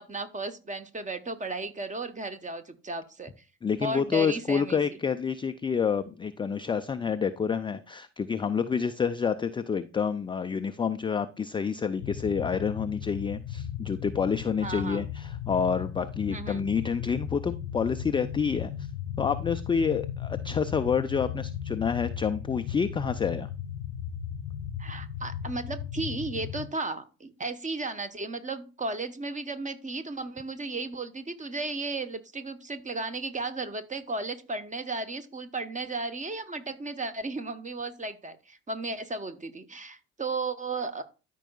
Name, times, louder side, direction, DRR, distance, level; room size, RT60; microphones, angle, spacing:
voice 1, 0.0-3.3 3.8-5.0 14.6-15.1 16.3-16.6 24.8-41.0, right 3 dB, 20° right, 10 dB, 1.0 m, -34 dB
voice 2, 3.6-18.7 19.2-23.5, left 6 dB, 15° left, 9 dB, 0.4 m, -28 dB
sound 1, 12.0-26.7, left 9 dB, 60° left, 0.6 m, -36 dB
13.0 x 5.3 x 2.3 m, 0.32 s
figure-of-eight pair, 55°, 38 cm